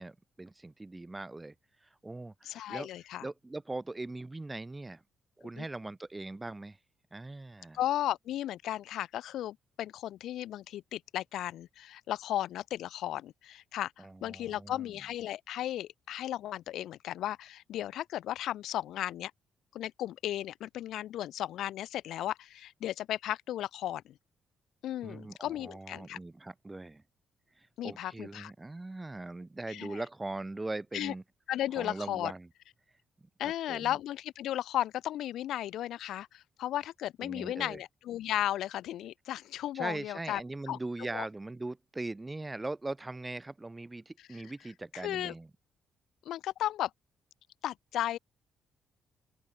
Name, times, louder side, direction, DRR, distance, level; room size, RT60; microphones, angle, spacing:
voice 1, 0.0-1.5 1.8-2.9 3.2-5.0 5.4-6.8 7.1-7.8 14.0-14.9 25.0-27.0 27.6-31.2 31.7-32.5 33.4-34.0 37.2-37.8 39.7-45.5, right 2 dB, 15° right, 2.9 m, -40 dB
voice 2, 2.4-3.2 5.6-5.7 7.7-19.3 19.7-24.1 24.8-26.2 27.8-28.5 29.7-30.0 30.9-31.1 31.5-32.3 33.4-40.4 40.7-40.8 41.1-41.2 44.3-44.4 44.9-45.3 46.2-46.9 47.6-48.2, left 12 dB, 80° left, 1.5 m, -35 dB
open air
cardioid pair, 90°, 0 cm